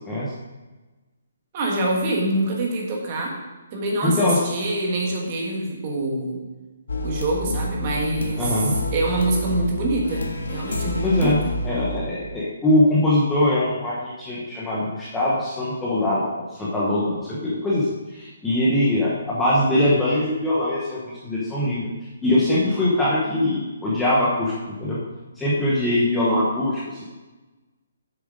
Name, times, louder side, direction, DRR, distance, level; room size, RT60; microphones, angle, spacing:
voice 1, 1.5-3.3 3.7-6.4 7.0-11.4, right 2 dB, 25° right, -1 dB, 1.4 m, -25 dB
voice 2, 4.0-4.4 8.4-8.7 11.0-11.4 11.6-21.9 22.2-24.5 24.8-25.0 25.4-27.1, left 1 dB, 5° left, -8 dB, 0.9 m, -22 dB
sound 1, 6.9-12.0, left 1 dB, 85° left, 1.6 m, -29 dB
7.6 x 6.9 x 5.1 m, 1.2 s
hypercardioid pair, 180°, 0 cm